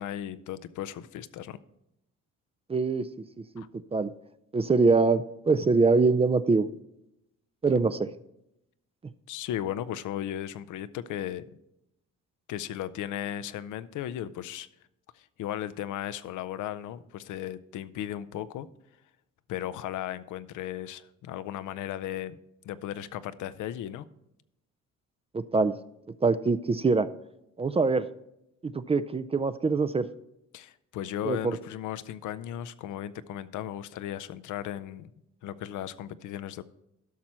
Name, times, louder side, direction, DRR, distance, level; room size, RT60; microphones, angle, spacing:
voice 1, 0.0-1.6 3.6-3.7 9.3-11.4 12.5-14.7 15.1-18.7 19.5-22.4 22.6-24.1 30.5-35.1 35.4-36.6, left 11 dB, 80° left, 15 dB, 0.6 m, -36 dB
voice 2, 2.7-3.1 3.4-3.6 3.9-4.1 4.5-6.7 7.6-8.1 25.3-25.8 26.2-27.1 27.6-28.1 28.6-30.1 31.2-31.6, right 4 dB, 20° right, 14 dB, 0.4 m, -24 dB
12.0 x 6.0 x 4.3 m, 0.83 s
cardioid pair, 90°, 30 cm